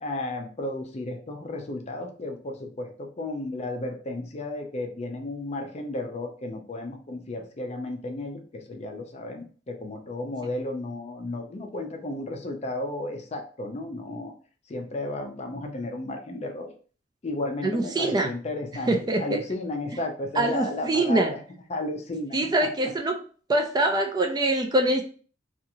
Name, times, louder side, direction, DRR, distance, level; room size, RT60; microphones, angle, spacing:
voice 1, 0.0-14.3 14.7-16.7 17.2-21.4 21.7-22.7, left 2 dB, 35° left, 4 dB, 0.5 m, -33 dB
voice 2, 17.6-18.3 18.9-19.4 20.4-21.3 22.3-23.1 23.5-25.1, right 1 dB, 20° right, 3 dB, 0.3 m, -24 dB
2.8 x 2.4 x 2.6 m, 0.41 s
head